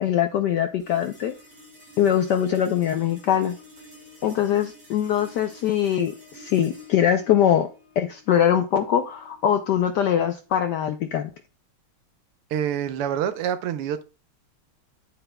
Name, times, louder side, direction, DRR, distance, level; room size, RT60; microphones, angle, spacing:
voice 1, 0.0-1.3 2.0-3.6 4.2-7.7 8.0-11.3, left 9 dB, 75° left, 0.9 m, -22 dB
sound 1, 0.8-11.4, left 1 dB, 30° right, 5.5 m, -50 dB
voice 2, 12.5-14.0, right 9 dB, 85° right, 1.7 m, -26 dB
9.9 x 7.8 x 2.2 m
omnidirectional pair, 2.4 m